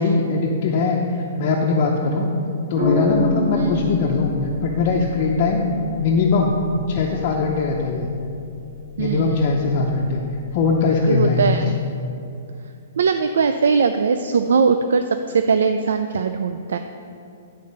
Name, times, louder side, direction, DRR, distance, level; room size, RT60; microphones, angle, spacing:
voice 1, 0.0-2.3 2.7-4.3 4.6-5.7 6.0-6.5 6.9-8.1 9.0-10.2 10.5-11.6, left 4 dB, 30° left, -2 dB, 0.5 m, -20 dB
sound 1, 2.7-11.3, left 2 dB, 60° right, 1.8 m, -30 dB
voice 2, 9.0-9.5 11.1-11.8 13.0-15.0 15.3-16.8, right 5 dB, 85° right, 8 dB, 0.3 m, -20 dB
10.0 x 3.9 x 5.3 m, 2.5 s
hypercardioid pair, 175°, 0 cm